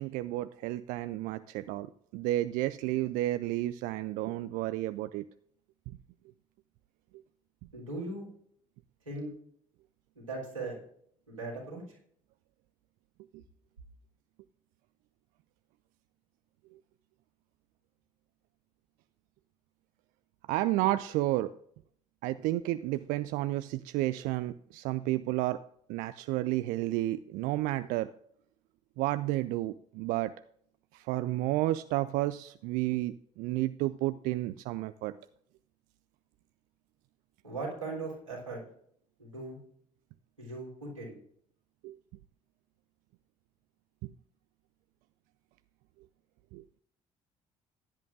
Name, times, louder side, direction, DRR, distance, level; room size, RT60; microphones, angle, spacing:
voice 1, 0.0-5.2 20.5-21.5 22.2-25.6 25.9-28.1 29.0-30.3 30.9-35.1 41.8-42.0 46.5-46.6, right 16 dB, 55° right, 14 dB, 0.4 m, -31 dB
voice 2, 7.7-8.3 9.0-9.3 10.1-10.8 11.3-11.8 37.4-38.6 39.2-39.6 40.4-41.2, right 3 dB, 85° right, -4 dB, 3.4 m, -38 dB
16.0 x 10.5 x 2.5 m, 0.65 s
figure-of-eight pair, 50°, 16 cm